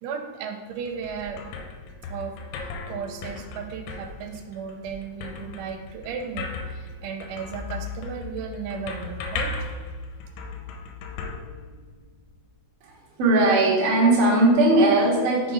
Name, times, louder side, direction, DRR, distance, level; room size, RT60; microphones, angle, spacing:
voice 1, 0.0-1.5 2.1-2.4 2.9-9.7, right 6 dB, 90° right, 4 dB, 3.0 m, -35 dB
sound 1, 0.7-12.2, left 4 dB, 85° left, 3.1 m, -36 dB
voice 2, 12.8-15.5, right 2 dB, 65° right, -4 dB, 1.5 m, -19 dB
6.7 x 4.0 x 5.0 m, 1.3 s
omnidirectional pair, 5.4 m